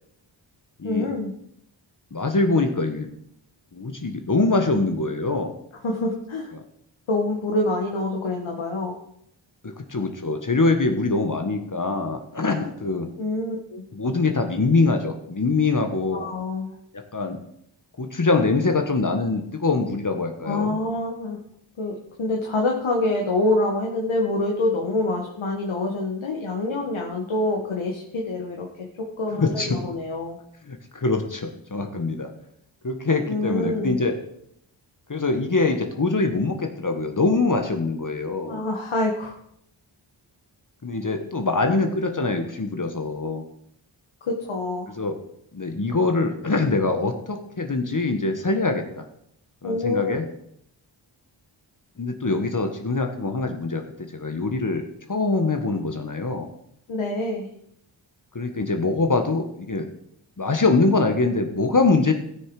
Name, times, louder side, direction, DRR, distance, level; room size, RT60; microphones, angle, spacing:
voice 1, 0.8-1.3 5.8-6.5 7.1-9.0 13.2-13.8 16.1-16.8 20.4-21.4 21.8-28.9 29.2-30.4 33.3-34.0 38.5-39.3 44.2-44.9 49.6-50.1 56.9-57.5, left 2 dB, 85° left, 0 dB, 1.8 m, -26 dB
voice 2, 2.1-3.1 3.7-5.5 9.6-13.1 13.9-16.2 16.9-17.4 18.0-20.8 29.3-29.8 30.6-32.3 32.8-34.1 35.1-38.6 40.8-43.4 45.0-45.1 45.5-49.0 49.6-50.2 52.0-56.5 58.3-59.9 60.4-62.1, left 3 dB, 40° left, 5 dB, 1.5 m, -23 dB
17.0 x 6.5 x 4.9 m, 0.72 s
cardioid pair, 55°, 47 cm